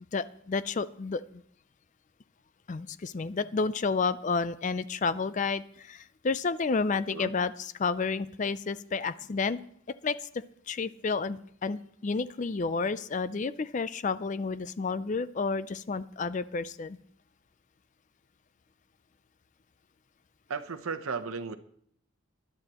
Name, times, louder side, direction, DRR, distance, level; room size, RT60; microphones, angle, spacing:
voice 1, 0.1-1.4 2.7-9.6 10.0-10.3 10.7-17.0, left 4 dB, 35° left, 15 dB, 0.4 m, -31 dB
voice 2, 20.5-21.6, right 5 dB, 90° right, 10 dB, 0.9 m, -35 dB
20.0 x 11.0 x 3.0 m, 0.65 s
head